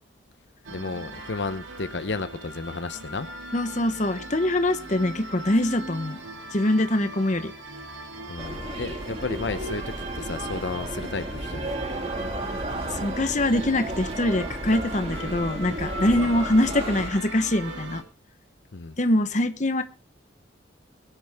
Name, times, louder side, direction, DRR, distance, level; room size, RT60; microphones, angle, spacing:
sound 1, 0.6-18.0, right 1 dB, 75° right, 2.3 m, -39 dB
voice 1, 0.7-3.3 8.3-11.7 16.1-16.3 18.7-19.0, left 3 dB, 65° left, 11 dB, 0.8 m, -33 dB
voice 2, 3.5-6.2 6.5-7.5 13.0-18.0 19.0-19.8, left 1 dB, 40° left, 9 dB, 1.0 m, -24 dB
sound 2, 8.4-17.1, right 1 dB, 30° right, 2.0 m, -33 dB
21.5 x 10.0 x 3.5 m, 0.32 s
head